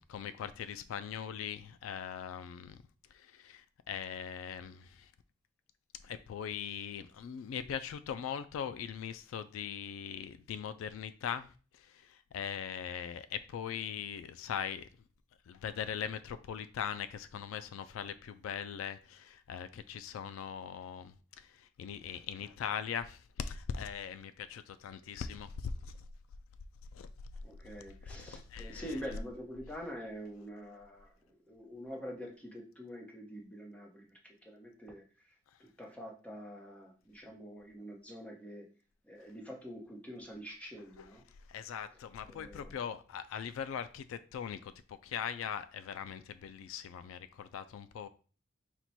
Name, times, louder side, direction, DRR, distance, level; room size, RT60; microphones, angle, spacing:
voice 1, 0.0-2.8 3.1-5.1 6.0-11.5 11.8-14.9 15.5-26.0 26.9-27.1 28.3-29.0 41.0-41.1 41.5-48.1, left 8 dB, 80° left, 0.3 m, -40 dB
voice 2, 27.4-31.2 31.5-35.0 35.6-38.7 39.0-41.2 42.3-42.8, equal, 5° left, 0.8 m, -46 dB
4.4 x 2.2 x 4.1 m
head